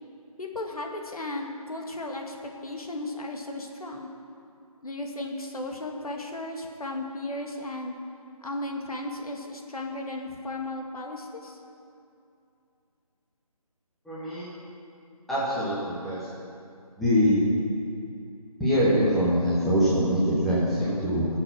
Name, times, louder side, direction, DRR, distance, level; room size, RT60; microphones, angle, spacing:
voice 1, 0.4-4.1 4.8-8.0 8.4-11.6, left 2 dB, 70° left, 1 dB, 2.1 m, -35 dB
voice 2, 14.0-14.5 15.3-16.2 17.0-17.5 18.6-21.3, equal, ahead, -13 dB, 1.5 m, -23 dB
17.0 x 7.2 x 6.0 m, 2.6 s
figure-of-eight pair, 165°, 19 cm